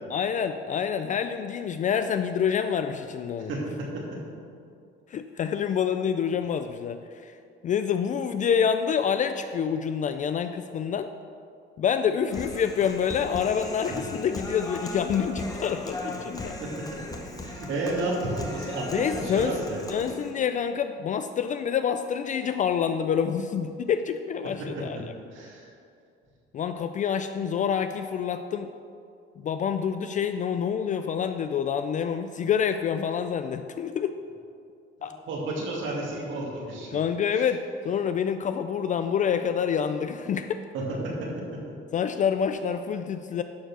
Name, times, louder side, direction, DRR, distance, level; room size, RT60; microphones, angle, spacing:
voice 1, 0.1-3.5 5.1-7.3 7.6-11.1 11.8-16.5 18.9-19.6 19.9-25.0 26.5-28.7 29.4-34.1 35.0-35.1 36.9-40.6 41.9-43.4, left 7 dB, 40° left, 9 dB, 0.4 m, -27 dB
voice 2, 3.5-4.0 13.9-14.0 16.6-16.8 17.4-19.9 24.6-25.0 25.3-25.7 35.0-36.9 37.4-37.5 40.7-41.6, right 2 dB, 70° right, -3 dB, 2.4 m, -32 dB
Human voice, 12.3-20.3, left 2 dB, 15° left, 1.0 m, -37 dB
11.5 x 4.5 x 6.1 m, 2.4 s
cardioid pair, 120°, 20 cm